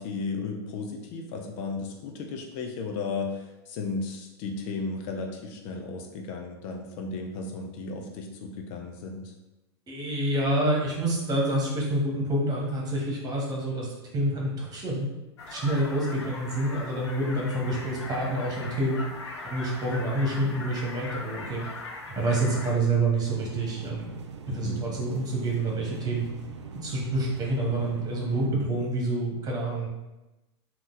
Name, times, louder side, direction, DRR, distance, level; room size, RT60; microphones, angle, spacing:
voice 1, 0.0-9.3 24.5-24.9, left 4 dB, 50° left, 2 dB, 0.6 m, -34 dB
voice 2, 9.9-13.9 14.1-15.1 15.5-19.0 19.4-21.6 22.1-24.1 24.5-26.2 26.7-29.9, right 1 dB, 25° right, -2 dB, 1.5 m, -27 dB
sound 1, 15.4-22.7, left 2 dB, 80° left, 0.6 m, -40 dB
sound 2, 23.3-28.5, right 5 dB, 85° right, 0.5 m, -42 dB
3.7 x 2.9 x 4.0 m, 1.0 s
hypercardioid pair, 100°, 14 cm